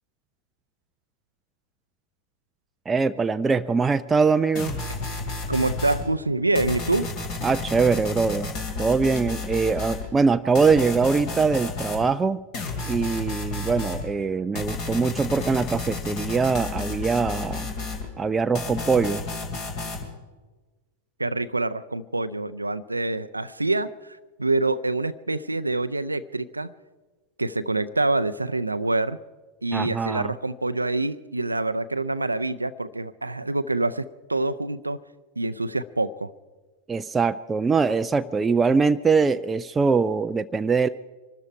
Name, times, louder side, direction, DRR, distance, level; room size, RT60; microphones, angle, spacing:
voice 1, 2.9-4.8 7.4-8.5 8.8-12.4 12.9-17.7 18.2-19.2 29.7-30.3 36.9-40.9, right 4 dB, 15° right, 9 dB, 0.4 m, -22 dB
sound 1, 4.5-6.0 6.5-10.0 10.5-12.0 12.5-14.0 14.5-18.0 18.5-20.0, left 3 dB, 40° left, 2.7 m, -32 dB
voice 2, 5.5-7.1 21.2-26.7 27.4-29.2 29.6-35.0 35.4-36.3, right 2 dB, 85° right, 12 dB, 0.5 m, -26 dB
24.0 x 13.0 x 4.7 m, 1.3 s
figure-of-eight pair, 90°, 0 cm